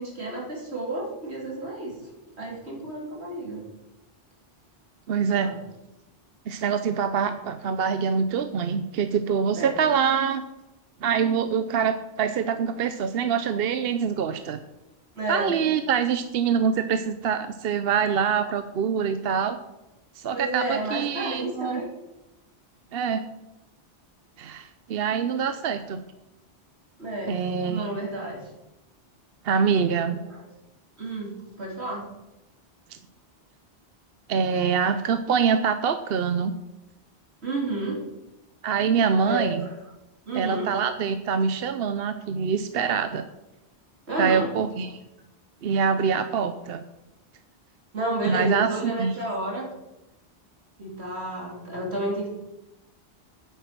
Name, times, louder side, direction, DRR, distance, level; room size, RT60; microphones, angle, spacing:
voice 1, 0.0-1.9 2.4-3.6 5.3-5.6 7.1-7.2 9.5-9.8 15.2-15.6 20.3-21.9 27.0-27.4 27.7-28.4 30.2-30.4 31.0-32.1 37.4-38.0 39.2-39.7 40.3-40.7 44.1-44.5 47.9-49.7 50.8-52.3, right 2 dB, 90° right, -2 dB, 3.3 m, -31 dB
voice 2, 5.1-5.5 6.5-10.4 11.0-14.6 15.3-19.6 20.2-21.8 22.9-23.2 24.4-26.0 27.3-27.9 29.4-30.2 34.3-36.5 38.6-39.6 40.3-43.3 44.2-45.0 45.6-46.8 48.3-49.1, right 6 dB, 70° right, 10 dB, 0.8 m, -25 dB
9.5 x 8.3 x 5.9 m, 0.96 s
omnidirectional pair, 1.1 m